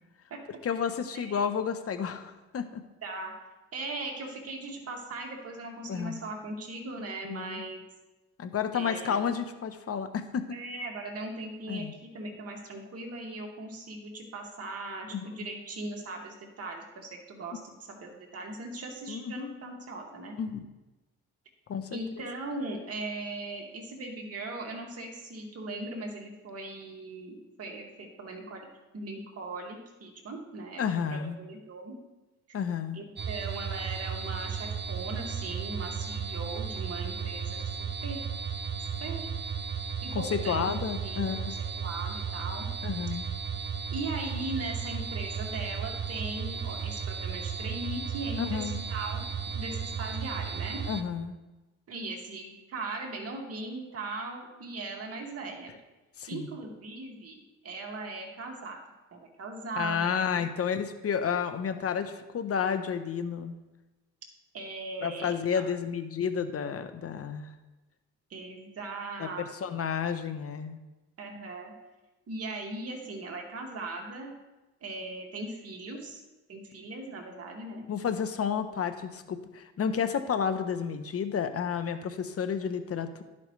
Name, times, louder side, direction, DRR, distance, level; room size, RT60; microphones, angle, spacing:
voice 1, 0.6-2.8 5.9-6.2 7.3-7.7 8.4-10.6 11.7-11.9 15.1-15.3 19.1-19.5 20.4-20.6 21.7-21.9 30.8-31.4 32.5-33.0 40.1-41.6 42.8-43.3 48.4-48.8 50.9-51.4 56.2-56.5 59.8-63.6 65.0-67.5 69.2-70.8 77.9-83.2, left 7 dB, 50° left, 9 dB, 1.0 m, -31 dB
voice 2, 3.0-3.3 3.7-7.8 8.7-9.2 10.5-20.4 21.9-28.7 28.9-32.0 32.9-38.2 39.0-39.3 40.0-40.7 41.0-41.5 41.8-42.7 43.9-49.2 49.5-50.8 51.9-55.7 56.3-58.8 59.1-60.4 64.5-65.3 68.3-69.7 71.2-71.7 72.3-74.3 74.8-76.2 76.5-77.9, right 2 dB, 50° right, 0 dB, 2.2 m, -39 dB
sound 1, 33.2-51.0, right 6 dB, 35° right, 0.7 m, -35 dB
12.0 x 8.5 x 3.3 m, 1.1 s
cardioid pair, 90°, 30 cm